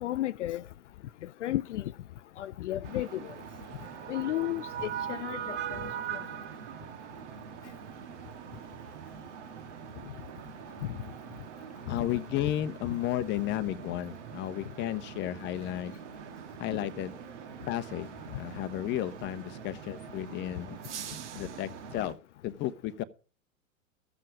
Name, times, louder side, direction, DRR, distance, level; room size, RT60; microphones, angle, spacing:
voice 1, 0.0-0.6 1.4-1.9 2.4-3.3 4.1-5.8 11.9-12.0 12.9-13.0, left 14 dB, 60° left, 0.5 m, -33 dB
sound 1, 2.8-22.1, right 8 dB, 60° right, 1.6 m, -42 dB
voice 2, 11.9-15.9 16.6-17.1 17.7-20.8 21.3-22.2 22.4-23.0, left 13 dB, 25° left, 0.8 m, -33 dB
14.0 x 7.6 x 5.0 m
figure-of-eight pair, 100°, 41 cm